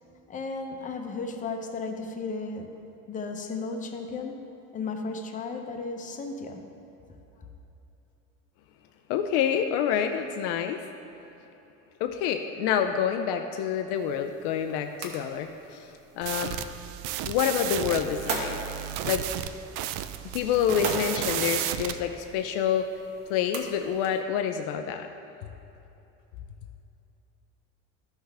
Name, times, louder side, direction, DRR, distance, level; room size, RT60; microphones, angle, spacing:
voice 1, 0.3-2.7 3.1-4.4 4.7-6.6, left 3 dB, 25° left, 4 dB, 0.7 m, -34 dB
voice 2, 9.1-10.8 12.0-16.6 17.2-18.6 19.1-19.3 20.3-22.9 23.3-25.1, left 8 dB, 85° left, 6 dB, 0.5 m, -27 dB
sound 1, 13.9-24.2, right 3 dB, 50° right, 1.1 m, -40 dB
sound 2, 16.2-22.0, right 12 dB, 85° right, 0.5 m, -33 dB
13.5 x 5.7 x 3.4 m, 3.0 s
cardioid pair, 150°, 30 cm